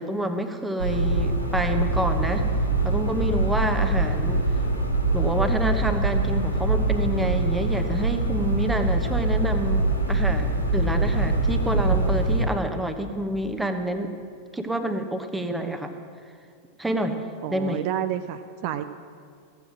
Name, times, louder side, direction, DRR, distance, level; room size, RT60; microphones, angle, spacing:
voice 1, 0.0-2.4 2.8-4.4 5.1-14.1 14.5-15.9 16.8-17.2 17.5-17.8, right 1 dB, 5° right, 7 dB, 1.0 m, -28 dB
sound 1, 0.8-12.5, right 2 dB, 90° left, 1.4 m, -24 dB
voice 2, 17.4-18.9, right 11 dB, 45° right, 9 dB, 0.4 m, -30 dB
15.0 x 7.9 x 6.1 m, 2.3 s
figure-of-eight pair, 90°, 0 cm